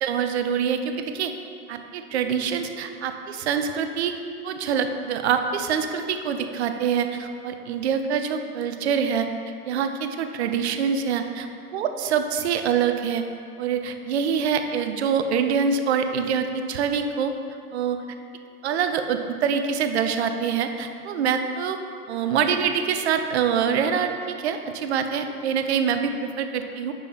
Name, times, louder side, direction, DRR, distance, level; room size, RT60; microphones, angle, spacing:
voice 1, 0.0-1.3 1.7-4.2 4.4-9.3 9.6-11.2 11.7-13.2 13.6-17.3 17.7-18.0 18.6-21.8 22.1-26.9, right 7 dB, 45° right, 7 dB, 0.6 m, -25 dB
9.8 x 3.5 x 5.8 m, 2.5 s
figure-of-eight pair, 105°, 46 cm